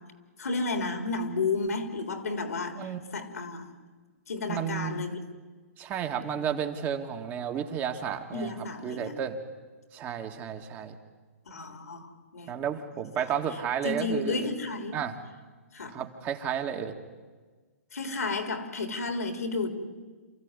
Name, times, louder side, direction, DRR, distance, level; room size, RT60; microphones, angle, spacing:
voice 1, 0.4-3.7 4.3-5.2 8.3-9.2 11.5-12.6 13.2-13.3 13.8-15.0 15.7-15.9 17.9-19.7, left 3 dB, 85° left, 7 dB, 3.6 m, -32 dB
voice 2, 4.5-5.1 5.8-9.4 9.9-10.9 12.5-14.5 14.9-15.2 15.9-17.0, right 8 dB, 25° right, 5 dB, 1.9 m, -32 dB
28.0 x 15.0 x 9.8 m, 1.4 s
hypercardioid pair, 140°, 8 cm